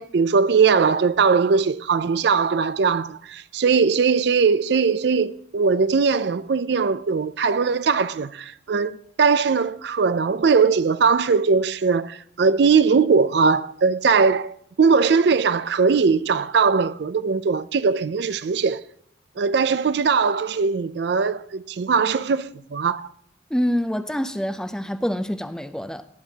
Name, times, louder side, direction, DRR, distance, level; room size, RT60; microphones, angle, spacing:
voice 1, 0.0-18.8 19.4-23.1, right 5 dB, 60° right, 0.4 m, -20 dB
voice 2, 23.5-26.1, equal, 5° left, 0.4 m, -26 dB
18.5 x 10.5 x 2.8 m
head